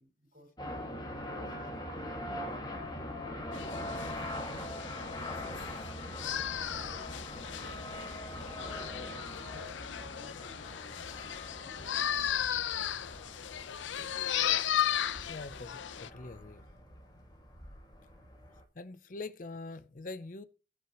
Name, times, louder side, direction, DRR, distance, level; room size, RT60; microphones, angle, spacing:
voice 1, 0.0-1.7 2.4-5.5 6.1-7.7 8.5-9.5 10.0-12.3 16.7-16.8, equal, 45° right, 5.6 m, -59 dB
sound 1, 0.6-18.6, left 1 dB, 20° left, 2.0 m, -42 dB
sound 2, 3.5-16.1, left 10 dB, 85° left, 0.6 m, -36 dB
voice 2, 15.3-16.6 18.8-20.4, left 3 dB, 45° left, 0.6 m, -44 dB
18.5 x 6.3 x 3.0 m
head